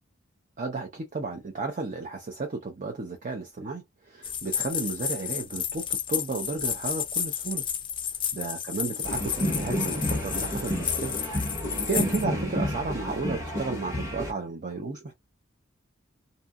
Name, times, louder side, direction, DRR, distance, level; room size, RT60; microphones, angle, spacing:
voice 1, 0.6-7.7 8.3-11.1 11.9-15.1, right 3 dB, 40° right, 0.6 m, -33 dB
sound 1, 4.2-12.2, left 8 dB, 25° left, 0.4 m, -32 dB
sound 2, 9.0-14.3, equal, 15° right, 1.1 m, -30 dB
2.7 x 2.5 x 2.3 m
head